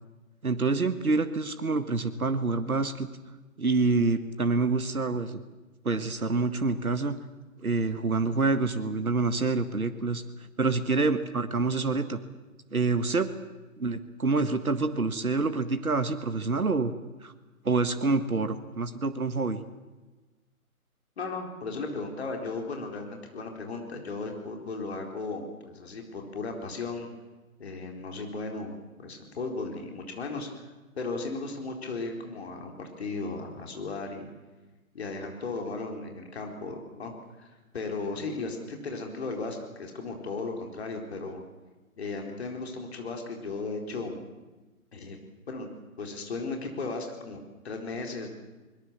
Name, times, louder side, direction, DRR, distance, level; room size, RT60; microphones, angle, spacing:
voice 1, 0.4-3.1 3.6-5.4 5.8-7.2 7.6-10.2 10.6-12.2 12.7-13.3 13.8-16.9 17.2-17.3 17.6-19.6, right 3 dB, 75° right, 9 dB, 1.8 m, -27 dB
voice 2, 21.2-27.1 27.6-30.5 31.0-34.3 34.9-37.1 37.4-37.5 37.7-41.4 42.0-44.2 44.9-45.2 45.5-45.7 46.0-48.3, left 3 dB, 45° left, 3 dB, 4.2 m, -36 dB
23.5 x 22.0 x 7.3 m, 1.2 s
figure-of-eight pair, 135°, 43 cm